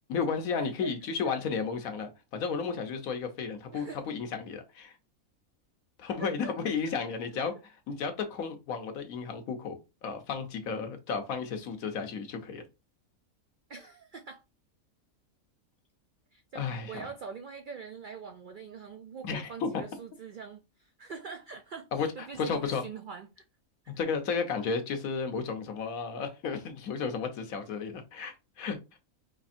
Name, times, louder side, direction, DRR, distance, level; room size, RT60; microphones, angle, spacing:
voice 1, 0.1-5.0 6.0-12.6 16.5-17.1 19.2-19.7 21.9-22.1 22.4-22.8 24.0-28.8, left 5 dB, 75° left, 1.3 m, -33 dB
voice 2, 3.7-4.0 6.2-6.5 13.7-14.4 16.3-23.4, right 5 dB, 75° right, 0.4 m, -44 dB
5.2 x 3.2 x 2.6 m
omnidirectional pair, 1.5 m